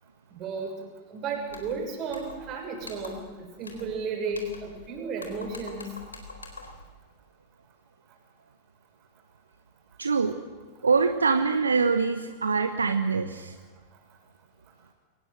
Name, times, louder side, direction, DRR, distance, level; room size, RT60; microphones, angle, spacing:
voice 1, 0.3-0.8 1.1-5.9, right 4 dB, 35° right, 3 dB, 6.8 m, -33 dB
sound 1, 1.5-1.8 2.1-2.5 2.8-3.3 3.6-4.0 4.3-4.9 5.2-6.8, left 3 dB, 75° left, 4.0 m, -44 dB
voice 2, 10.0-10.4 10.8-13.6, right 4 dB, 75° right, 9 dB, 1.2 m, -24 dB
23.5 x 19.5 x 7.7 m, 1.4 s
figure-of-eight pair, 90°, 0 cm